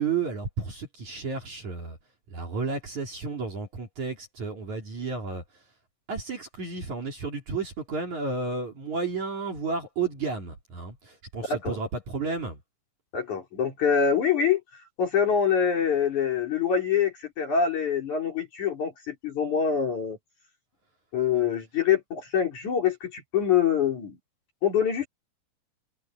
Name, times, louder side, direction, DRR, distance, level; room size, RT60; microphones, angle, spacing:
voice 1, 0.0-2.0 2.3-5.4 6.1-12.6, right 4 dB, 40° right, 4.2 m, -32 dB
voice 2, 11.4-11.8 13.1-20.2 21.1-24.2 24.6-25.1, left 7 dB, 40° left, 4.6 m, -25 dB
omnidirectional pair, 5.8 m